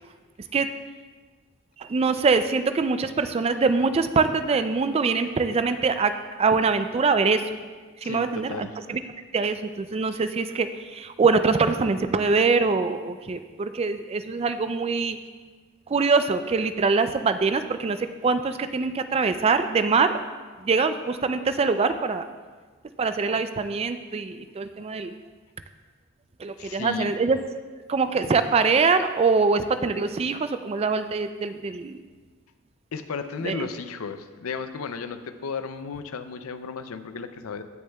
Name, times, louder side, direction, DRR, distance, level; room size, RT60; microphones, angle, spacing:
voice 1, 1.8-6.1 6.4-7.4 8.0-9.0 9.3-15.2 15.9-20.2 20.6-22.2 23.0-25.1 26.4-27.4 27.9-32.0 33.4-33.7, right 4 dB, 25° right, 10 dB, 0.3 m, -23 dB
voice 2, 8.0-8.8 26.6-27.1 32.9-37.6, left 5 dB, 70° left, 10 dB, 0.5 m, -34 dB
16.5 x 6.4 x 2.3 m, 1.4 s
head